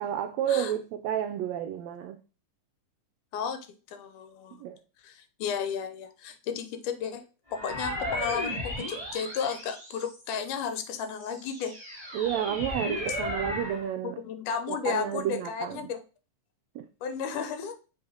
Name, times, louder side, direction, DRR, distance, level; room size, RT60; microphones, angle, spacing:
voice 1, 0.0-2.2 4.5-4.8 12.1-14.2 14.7-15.9 16.7-16.9, right 10 dB, 85° right, 1.5 m, -31 dB
voice 2, 3.3-4.6 5.0-7.2 7.5-11.8 14.0-16.0 17.0-17.7, left 7 dB, 80° left, 2.3 m, -33 dB
sound 1, 7.5-10.4 11.0-13.9, left 1 dB, 10° left, 1.9 m, -35 dB
7.4 x 3.5 x 3.8 m
omnidirectional pair, 3.6 m